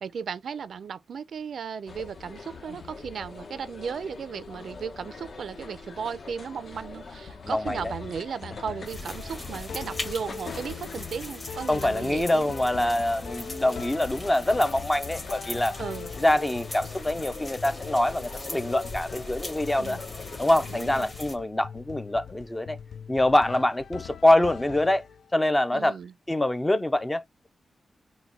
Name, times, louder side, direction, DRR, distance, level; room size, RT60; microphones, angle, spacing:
voice 1, 0.0-12.5 15.8-16.1 19.8-20.0 20.7-21.1 25.7-26.1, right 6 dB, 75° right, 0.4 m, -36 dB
sound 1, 1.9-21.1, left 4 dB, 55° left, 0.8 m, -44 dB
voice 2, 7.5-7.9 11.7-15.8 16.2-20.0 20.4-22.8 23.1-25.0 25.3-26.0 26.3-27.5, left 1 dB, 15° left, 0.5 m, -25 dB
sound 2, 7.7-25.5, left 7 dB, 75° left, 0.4 m, -42 dB
sound 3, 8.8-21.4, left 2 dB, 30° left, 1.4 m, -40 dB
4.0 x 2.1 x 4.3 m
wide cardioid pair, 120°, 0 cm